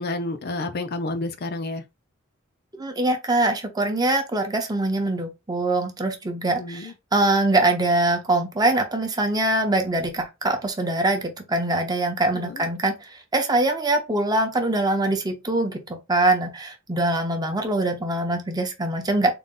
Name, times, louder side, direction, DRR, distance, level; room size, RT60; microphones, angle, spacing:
voice 1, 0.0-1.8 6.6-6.9 12.3-12.6, left 2 dB, 50° left, 0.5 m, -30 dB
voice 2, 2.8-13.0 13.3-19.3, right 2 dB, 20° right, 0.7 m, -23 dB
3.8 x 2.2 x 3.7 m
head